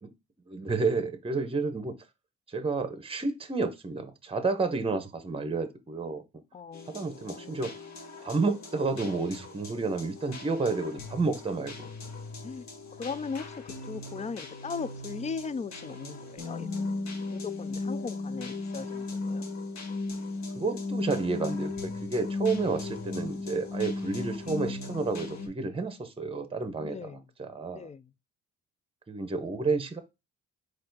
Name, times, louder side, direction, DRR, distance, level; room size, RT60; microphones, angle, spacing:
voice 1, 0.5-1.9 2.5-6.2 6.9-7.7 8.2-11.9 20.6-27.9 29.1-30.0, right 3 dB, 15° right, 0.8 m, -30 dB
voice 2, 6.5-7.6 12.4-12.7 13.0-16.7 17.3-19.4 26.8-27.2 27.7-28.1, left 5 dB, 20° left, 0.3 m, -38 dB
sound 1, 6.7-25.5, left 3 dB, 55° left, 1.3 m, -37 dB
4.2 x 2.6 x 3.9 m
supercardioid pair, 70°, 32 cm